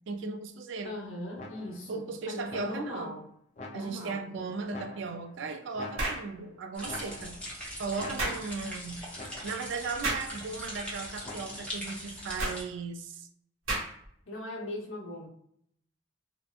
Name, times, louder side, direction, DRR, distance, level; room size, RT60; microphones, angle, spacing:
voice 1, 0.1-1.0 1.9-3.2 3.7-7.4 7.8-9.1 9.4-13.3, right 4 dB, 60° right, 0.3 m, -37 dB
voice 2, 0.8-3.3 3.7-4.5 8.2-8.4 14.3-15.3, left 1 dB, 75° left, 0.9 m, -39 dB
sound 1, 1.4-1.9 2.5-3.1 3.6-4.2 4.7-5.4 5.7-6.5 6.8-7.6 8.0-8.7 9.2-9.7 11.2-11.8, left 2 dB, 35° left, 0.4 m, -46 dB
sound 2, 6.0-6.3 8.2-8.4 10.0-10.3 12.4-12.6 13.7-14.1, right 2 dB, 90° right, 1.2 m, -31 dB
sound 3, 6.7-12.6, equal, 5° left, 0.7 m, -41 dB
2.8 x 2.1 x 2.3 m
head